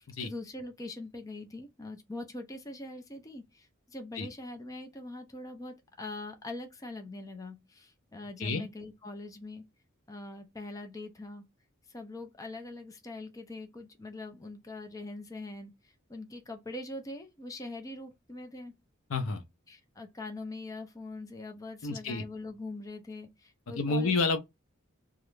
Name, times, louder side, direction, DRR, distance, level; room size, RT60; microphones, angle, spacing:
voice 1, 0.0-9.6 10.1-11.4 11.9-18.7 19.7-24.1, left 2 dB, 15° left, 0.4 m, -43 dB
voice 2, 19.1-19.4 21.8-22.2 23.8-24.4, left 3 dB, 70° left, 0.5 m, -29 dB
2.4 x 2.1 x 3.0 m
head